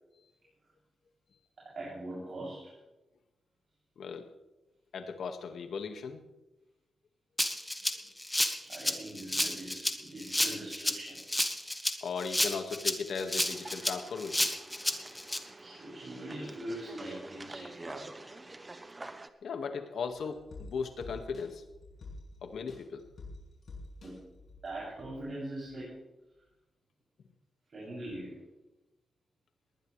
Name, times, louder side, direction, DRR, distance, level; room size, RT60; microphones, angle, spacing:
voice 1, 1.8-2.7 8.6-11.2 15.6-18.3 24.0-24.2 24.6-26.0 27.7-28.4, right 1 dB, 45° right, -7 dB, 7.6 m, -42 dB
voice 2, 4.0-4.3 4.9-6.2 12.0-14.5 19.4-21.7 22.4-23.0, left 5 dB, 80° left, 6 dB, 1.8 m, -37 dB
Rattle (instrument), 7.4-15.4, left 1 dB, 5° left, 1.3 m, -31 dB
sound 1, 13.5-19.3, right 2 dB, 15° right, 0.9 m, -47 dB
sound 2, 20.1-25.3 25.7-25.8, left 2 dB, 55° left, 6.3 m, -49 dB
20.0 x 19.5 x 3.3 m, 0.99 s
wide cardioid pair, 155°, 0 cm